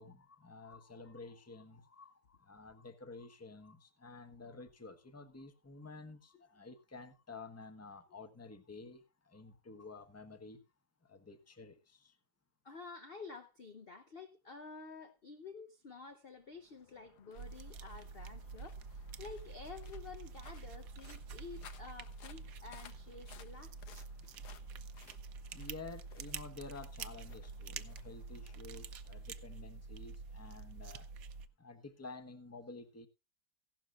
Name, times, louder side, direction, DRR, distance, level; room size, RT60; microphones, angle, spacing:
voice 1, 0.0-10.6 11.0-12.2 25.5-31.1 31.6-33.1, left 3 dB, 10° left, 1.0 m, -51 dB
voice 2, 12.6-24.0, left 4 dB, 45° left, 0.9 m, -51 dB
sound 1, 16.4-29.7, left 8 dB, 70° left, 1.5 m, -61 dB
sound 2, 17.4-31.5, right 5 dB, 60° right, 1.1 m, -47 dB
16.0 x 12.0 x 2.5 m
omnidirectional pair, 1.9 m